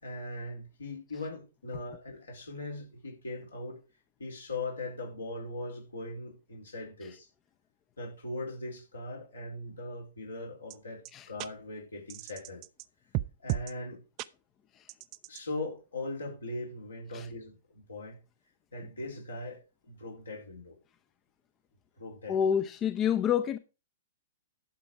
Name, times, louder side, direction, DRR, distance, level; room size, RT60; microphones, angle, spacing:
voice 1, 0.0-3.8 4.2-7.3 8.0-11.0 11.3-12.6 13.4-14.0 15.3-18.2 18.7-19.6 19.9-20.8 22.0-22.4, left 2 dB, 80° left, 4.4 m, -40 dB
sound 1, 10.7-10.8 11.1-11.2 11.4-11.5 12.1-12.9 13.1-13.7 14.2-14.3 14.9-15.4, right 16 dB, 35° right, 0.5 m, -34 dB
voice 2, 22.3-23.6, left 8 dB, 25° left, 0.7 m, -28 dB
11.5 x 6.9 x 4.7 m
figure-of-eight pair, 110°, 0 cm